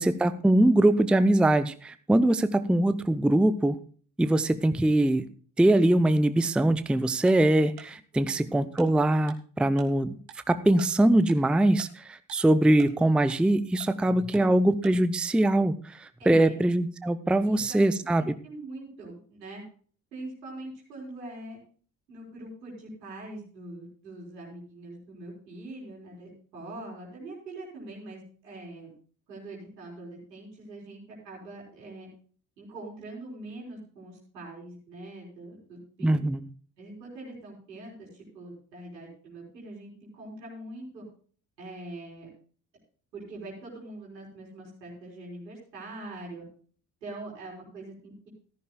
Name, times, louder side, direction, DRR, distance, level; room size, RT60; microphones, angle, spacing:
voice 1, 0.0-3.8 4.2-5.3 5.6-10.2 10.5-18.2 36.0-36.5, right 1 dB, ahead, 13 dB, 0.6 m, -22 dB
Tick-tock, 7.3-7.4 7.8-7.9 8.3-8.4 8.8-8.9 9.3-9.4 9.8-9.9 10.3-10.4 10.8-10.9 11.3-11.4 11.8-11.9 12.3-12.4 12.8-12.9 13.3-13.4 13.8-13.9 14.3-14.4 14.8-14.9, right 11 dB, 60° right, 1.8 m, -46 dB
voice 2, 8.1-8.6 16.2-16.6 17.4-17.8 18.1-19.6 20.1-21.6 22.1-28.9 29.3-32.1 32.6-36.3 36.8-41.0 41.6-42.3 43.1-46.4 47.0-48.3, right 2 dB, 80° right, -3 dB, 4.2 m, -43 dB
14.5 x 13.5 x 2.3 m, 0.44 s
figure-of-eight pair, 45°, 49 cm